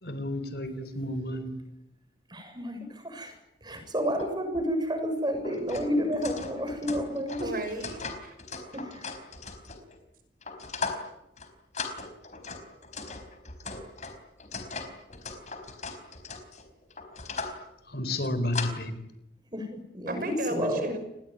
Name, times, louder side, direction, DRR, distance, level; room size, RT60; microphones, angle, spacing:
voice 1, 0.0-1.5 17.9-18.9, left 1 dB, 60° left, 12 dB, 4.2 m, -31 dB
voice 2, 2.3-3.3 3.6-7.5 8.7-9.1 19.5-21.0, equal, 25° right, 6 dB, 7.1 m, -31 dB
sound 1, 4.2-4.3 4.5-4.7 5.3-10.0 10.4-11.1 11.4-11.5 11.7-17.6 18.1-18.7, left 4 dB, 40° left, 4.5 m, -38 dB
voice 3, 7.4-8.3 20.1-21.0, right 1 dB, 50° right, 8 dB, 6.0 m, -34 dB
29.0 x 20.5 x 9.7 m, 0.86 s
head